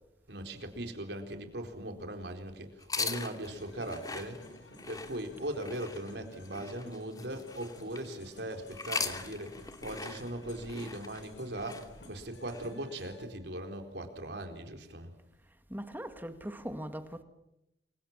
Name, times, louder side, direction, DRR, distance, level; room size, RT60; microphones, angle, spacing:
voice 1, 0.3-4.4 4.9-15.1, right 1 dB, 70° right, 4.2 m, -39 dB
sound 1, 2.8-8.2 8.7-12.7, left 4 dB, 20° left, 2.7 m, -41 dB
sound 2, 3.4-13.3, left 1 dB, 75° left, 5.2 m, -54 dB
voice 2, 15.7-17.2, equal, 10° right, 2.0 m, -40 dB
29.5 x 24.0 x 7.5 m
head